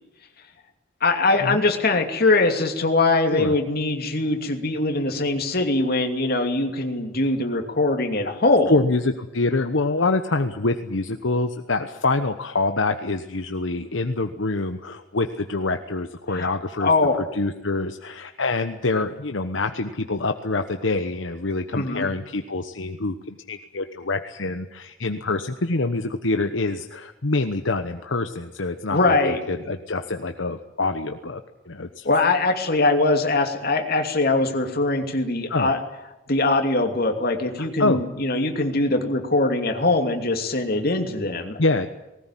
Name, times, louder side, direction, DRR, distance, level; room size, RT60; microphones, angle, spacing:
voice 1, 1.0-8.7 16.3-16.5 16.8-17.2 21.7-22.1 28.9-29.4 32.0-35.8 36.3-41.6, left 2 dB, 55° left, 5 dB, 2.7 m, -22 dB
voice 2, 8.7-16.9 17.3-31.4 31.7-32.1 35.5-35.7 37.6-38.0 41.6-41.9, left 3 dB, 75° left, 7 dB, 1.1 m, -25 dB
20.0 x 18.5 x 10.0 m, 0.98 s
head